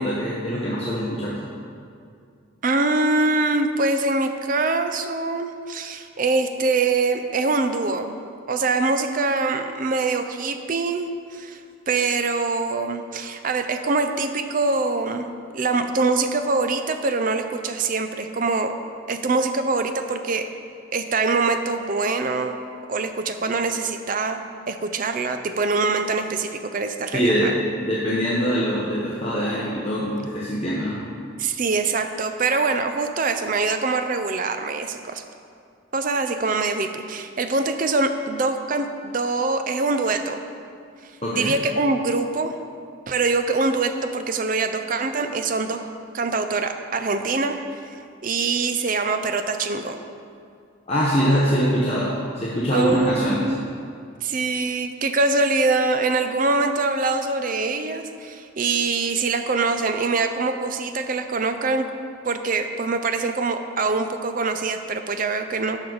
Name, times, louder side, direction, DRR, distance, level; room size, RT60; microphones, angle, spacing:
voice 1, 0.0-1.4 27.1-31.0 41.2-41.6 50.9-53.5, equal, 30° left, -6 dB, 0.9 m, -23 dB
voice 2, 2.6-8.2 8.5-11.6 11.9-18.7 19.1-20.5 20.9-22.6 22.9-27.5 31.4-35.2 35.9-40.4 41.3-42.5 43.1-45.9 46.1-47.8 48.2-50.0 52.7-53.7 54.2-61.8 62.2-65.8, right 3 dB, 40° right, 8 dB, 0.5 m, -24 dB
11.5 x 6.2 x 4.0 m, 2.3 s
head